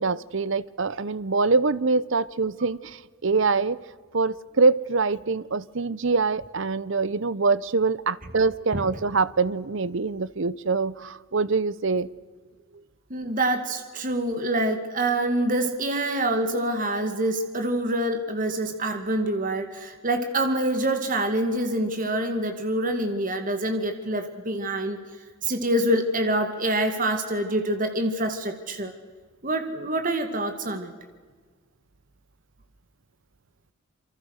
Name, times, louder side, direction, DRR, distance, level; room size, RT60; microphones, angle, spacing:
voice 1, 0.0-3.8 4.1-12.1, right 4 dB, 55° right, 18 dB, 0.8 m, -24 dB
voice 2, 13.1-25.0 25.4-28.9 29.4-30.9, right 1 dB, 35° right, 6 dB, 2.2 m, -26 dB
28.0 x 24.5 x 6.5 m, 1.5 s
head